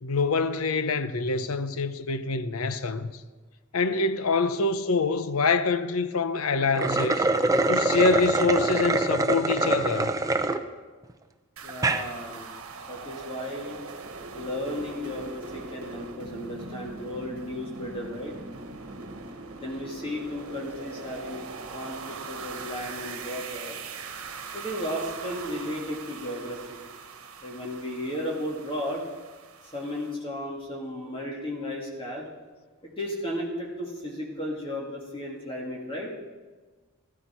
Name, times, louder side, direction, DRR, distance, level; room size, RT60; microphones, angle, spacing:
voice 1, 0.0-3.2 3.7-7.3 7.7-10.1, left 4 dB, 80° left, 0.7 m, -25 dB
sound 1, 6.7-10.6 11.1-11.2 11.7-12.0, right 2 dB, 15° right, 0.6 m, -24 dB
voice 2, 11.6-12.6 12.9-13.8 14.3-18.3 19.6-21.4 21.7-23.8 24.5-26.8 27.4-29.0 29.6-32.2 32.8-36.1, left 1 dB, 25° left, 2.1 m, -34 dB
sound 2, 11.6-30.1, right 4 dB, 70° right, 1.3 m, -41 dB
14.5 x 13.5 x 4.4 m
head